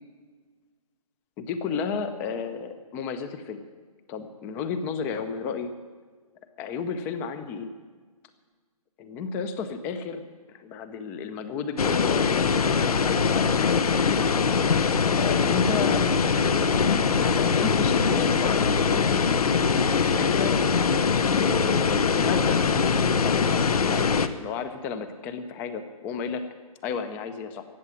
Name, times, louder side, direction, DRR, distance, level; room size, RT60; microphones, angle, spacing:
voice 1, 1.4-3.6 4.1-5.7 6.6-7.7 9.0-10.2 10.5-14.2 15.2-19.8 20.1-20.5 21.4-26.4 26.8-27.7, left 6 dB, 10° left, 10 dB, 0.5 m, -33 dB
sound 1, 11.8-24.3, left 5 dB, 80° left, 1.0 m, -22 dB
16.0 x 7.3 x 9.7 m, 1.5 s
hypercardioid pair, 160°, 19 cm